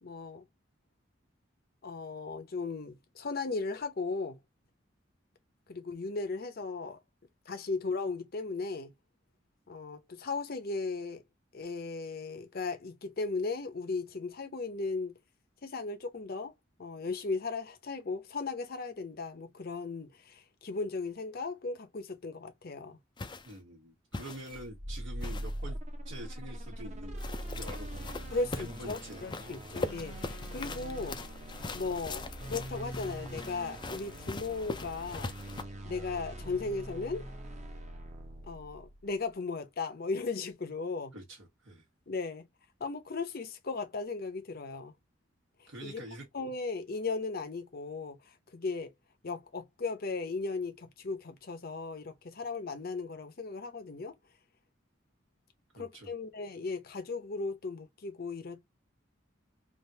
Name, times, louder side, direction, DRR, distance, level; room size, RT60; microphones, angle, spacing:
voice 1, 0.0-0.4 1.8-4.4 5.7-7.0 7.5-8.9 9.7-11.2 11.5-15.1 15.6-16.5 16.8-23.0 28.3-31.2 31.7-35.3 35.8-37.3 38.5-41.1 42.1-42.5 42.8-44.9 45.8-46.0 46.3-48.9 49.2-54.1 55.7-58.7, left 3 dB, 55° left, 0.8 m, -36 dB
sound 1, 23.2-23.5 24.1-24.6 25.2-25.6 27.2-35.6, left 3 dB, 25° left, 0.4 m, -41 dB
voice 2, 23.4-25.8 26.0-28.1 28.6-29.2 41.1-41.8 45.7-46.2 55.7-56.1, right 1 dB, 80° right, 1.4 m, -46 dB
sound 2, 24.5-39.1, right 1 dB, 40° right, 1.0 m, -42 dB
3.3 x 2.5 x 2.7 m
head